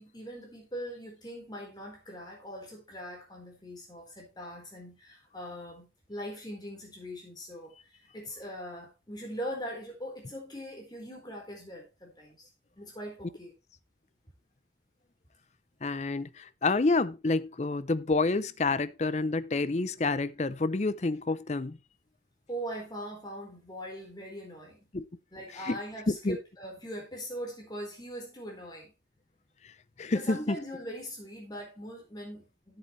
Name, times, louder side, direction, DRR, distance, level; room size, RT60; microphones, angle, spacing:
voice 1, 0.0-12.5 12.8-13.5 22.5-24.8 25.3-28.9 30.1-32.8, equal, 25° left, 4.2 m, -41 dB
voice 2, 15.8-21.8 24.9-25.1 25.7-25.8 26.1-26.4 30.0-30.6, left 3 dB, 40° left, 0.5 m, -28 dB
12.5 x 7.8 x 3.2 m
head